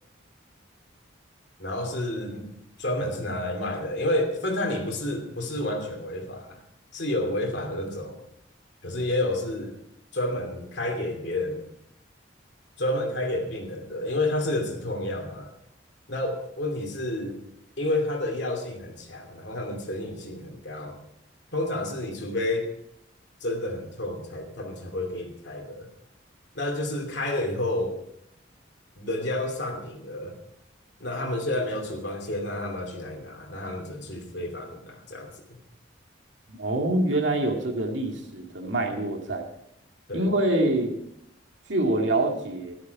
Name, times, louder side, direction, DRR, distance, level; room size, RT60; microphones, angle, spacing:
voice 1, 1.6-2.5 2.8-6.6 6.9-8.2 8.8-9.7 10.1-11.6 12.8-15.5 16.1-17.4 17.8-21.0 21.5-22.7 23.4-25.9 26.5-28.0 29.0-30.4 31.0-35.3 40.1-40.3, left 1 dB, 60° left, 3 dB, 2.7 m, -30 dB
voice 2, 36.6-39.5 40.1-40.9 41.7-42.7, right 1 dB, 70° right, 2 dB, 2.2 m, -25 dB
13.0 x 12.0 x 4.8 m, 0.77 s
head